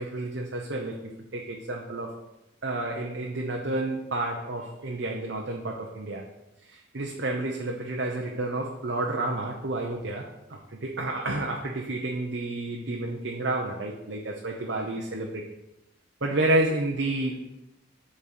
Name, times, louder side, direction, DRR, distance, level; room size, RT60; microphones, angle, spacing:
voice 1, 0.0-2.1 2.6-6.2 6.6-15.4 16.2-17.4, right 2 dB, 65° right, 0 dB, 0.9 m, -30 dB
8.1 x 4.3 x 6.9 m, 0.93 s
head